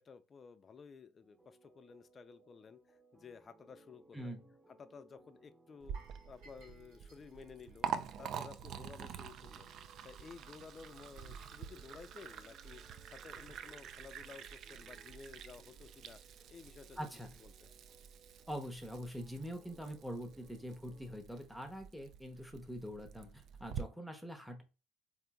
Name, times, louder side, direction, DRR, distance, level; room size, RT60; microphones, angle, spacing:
voice 1, 0.0-4.4 4.7-6.0 6.3-7.9 8.2-9.7 10.0-16.2 16.5-17.1 17.4-17.7, left 5 dB, 35° left, 0.4 m, -54 dB
sound 1, 1.2-21.2, right 2 dB, 20° right, 1.0 m, -66 dB
voice 2, 4.1-4.5 17.0-17.3 18.5-24.6, equal, ahead, 0.7 m, -44 dB
Liquid, 5.8-23.8, right 8 dB, 55° right, 0.3 m, -47 dB
sound 2, 5.9-8.9 9.2-9.4 9.9-10.0, right 3 dB, 75° right, 1.2 m, -63 dB
3.7 x 2.7 x 2.2 m
hypercardioid pair, 70°, 0 cm